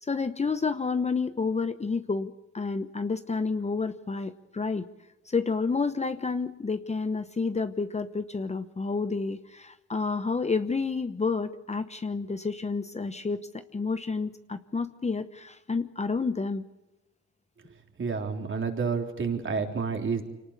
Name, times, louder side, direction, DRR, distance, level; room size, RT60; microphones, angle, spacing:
voice 1, 0.0-4.8 5.3-16.6, left 4 dB, 20° left, 10 dB, 1.0 m, -30 dB
voice 2, 18.0-20.2, right 5 dB, 40° right, 3 dB, 3.7 m, -29 dB
25.0 x 19.0 x 8.4 m, 1.0 s
cardioid pair, 90°, 30 cm